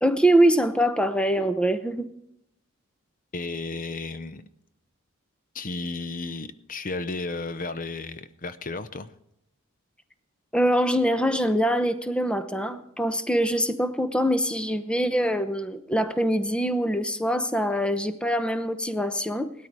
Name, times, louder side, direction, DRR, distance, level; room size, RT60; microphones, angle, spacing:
voice 1, 0.0-2.1 10.5-19.5, equal, 5° left, 10 dB, 0.7 m, -24 dB
voice 2, 3.3-4.5 5.5-9.1, left 3 dB, 40° left, 12 dB, 0.6 m, -33 dB
18.5 x 13.0 x 4.7 m, 0.77 s
head